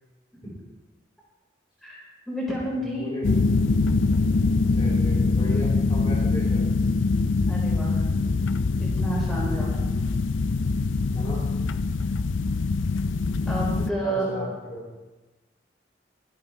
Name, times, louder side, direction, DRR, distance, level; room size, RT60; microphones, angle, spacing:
voice 1, 1.8-3.1 7.4-8.0 8.8-9.9 13.5-14.4, right 1 dB, ahead, -7 dB, 4.7 m, -30 dB
voice 2, 2.9-3.5 4.8-6.7 9.2-9.7 11.1-11.4 14.0-15.0, equal, 25° left, -6 dB, 3.1 m, -36 dB
sound 1, 3.2-13.9, left 3 dB, 90° left, 0.5 m, -23 dB
23.5 x 8.7 x 3.4 m, 1.2 s
head